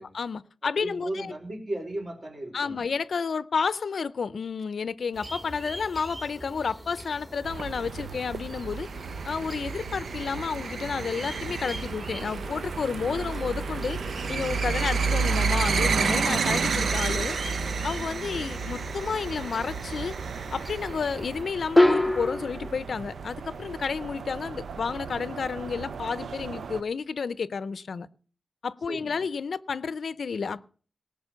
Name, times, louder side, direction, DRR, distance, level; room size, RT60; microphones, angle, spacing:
voice 1, 0.1-1.3 2.5-8.9 9.2-14.0 14.3-17.4 17.8-20.1 20.5-28.1 28.6-30.6, left 5 dB, 70° left, 0.5 m, -31 dB
voice 2, 0.8-2.8 28.9-29.1, right 1 dB, 50° right, 4.6 m, -35 dB
sound 1, 5.1-21.4, right 1 dB, 25° right, 2.5 m, -42 dB
sound 2, 7.4-26.8, right 5 dB, 85° right, 0.5 m, -31 dB
sound 3, 17.2-17.8 21.8-22.7, left 1 dB, 5° left, 0.9 m, -23 dB
18.0 x 6.3 x 6.9 m
wide cardioid pair, 115°, 0 cm